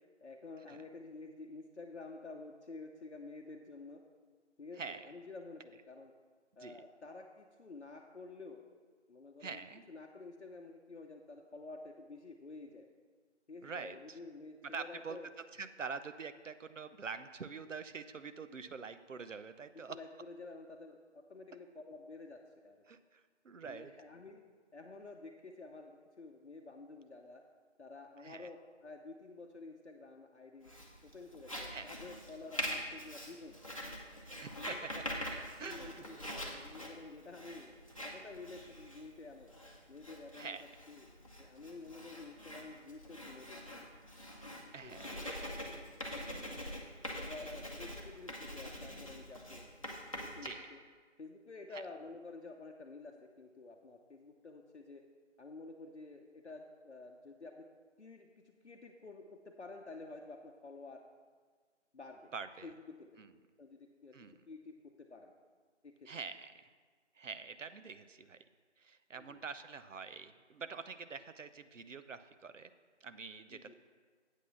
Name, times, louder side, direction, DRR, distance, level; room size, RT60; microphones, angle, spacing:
voice 1, 0.2-4.0 4.6-6.1 6.6-8.6 9.1-9.6 9.9-12.9 13.5-15.3 19.7-22.8 23.7-24.4 24.7-27.4 27.8-30.7 31.0-33.6 34.6-34.8 35.6-37.7 38.0-39.5 39.9-40.6 40.9-41.1 41.4-43.9 44.8-45.5 47.2-49.6 50.2-50.8 51.2-55.0 55.4-57.7 58.0-61.0 61.9-62.3 62.6-63.2 63.6-64.2 64.5-65.3 65.8-66.1 69.2-69.4 73.5-73.7, left 3 dB, 65° left, 2 dB, 0.8 m, -50 dB
voice 2, 4.8-5.1 6.6-6.8 9.4-9.9 13.6-14.2 14.6-15.2 15.5-20.0 22.9-23.9 28.2-28.5 31.7-31.9 34.4-35.0 35.6-36.6 40.4-40.6 44.7-45.3 46.3-46.7 50.4-50.7 51.7-51.8 62.3-62.7 63.2-63.3 64.1-64.4 66.1-66.7 67.2-68.4 68.8-72.7 73.0-73.7, right 5 dB, 90° right, 11 dB, 0.7 m, -46 dB
Writing, 30.6-50.5, equal, 30° left, 0.8 m, -45 dB
8.1 x 6.1 x 5.6 m, 1.5 s
figure-of-eight pair, 170°, 36 cm